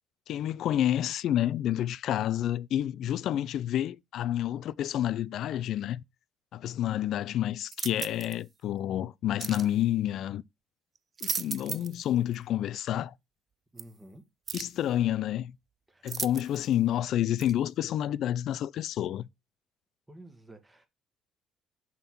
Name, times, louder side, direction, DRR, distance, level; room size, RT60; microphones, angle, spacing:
voice 1, 0.3-6.0 6.5-10.4 11.2-13.1 14.5-15.5 16.0-19.2, left 12 dB, 65° left, 0.3 m, -29 dB
sound 1, 7.7-8.4 9.4-9.7 11.0-12.0 12.3-12.4 13.8-13.9 14.5-14.8 16.1-16.7 17.4-17.5, right 6 dB, 40° right, 0.3 m, -36 dB
voice 2, 13.7-14.3 15.9-16.2 20.1-20.9, right 1 dB, 10° right, 1.5 m, -51 dB
5.4 x 3.6 x 5.9 m
cardioid pair, 90°, 0 cm